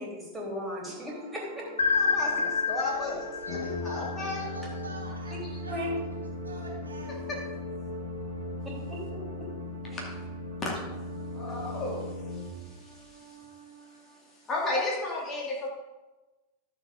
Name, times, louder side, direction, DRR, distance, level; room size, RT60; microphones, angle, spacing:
voice 1, 0.0-1.6 5.7-6.0 8.6-9.5 9.9-10.0, left 1 dB, 10° right, -3 dB, 3.4 m, -37 dB
sound 1, 0.8-14.5, right 3 dB, 60° right, 2.4 m, -46 dB
sound 2, 1.8-4.7, left 5 dB, 75° left, 0.8 m, -28 dB
voice 2, 1.9-3.6 3.8-4.4 7.3-7.4 10.0-10.1 10.6-10.7 11.3-13.4 14.5-15.7, left 2 dB, 25° left, -1 dB, 2.3 m, -34 dB
voice 3, 2.8-7.4, right 1 dB, 80° right, -2 dB, 2.3 m, -46 dB
Brass instrument, 3.5-12.9, left 2 dB, 45° left, 1.7 m, -38 dB
11.5 x 7.2 x 3.8 m, 1.1 s
figure-of-eight pair, 90°, 0 cm